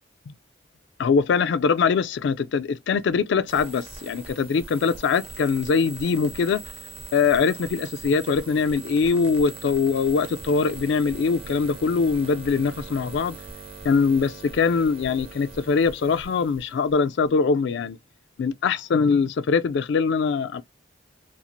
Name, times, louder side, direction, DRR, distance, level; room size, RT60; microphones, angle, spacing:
voice 1, 1.0-6.6 7.1-13.4 13.8-18.0 18.4-20.6, left 5 dB, 60° left, 0.3 m, -22 dB
sound 1, 3.5-17.3, right 3 dB, 30° right, 0.5 m, -41 dB
2.6 x 2.4 x 2.9 m
head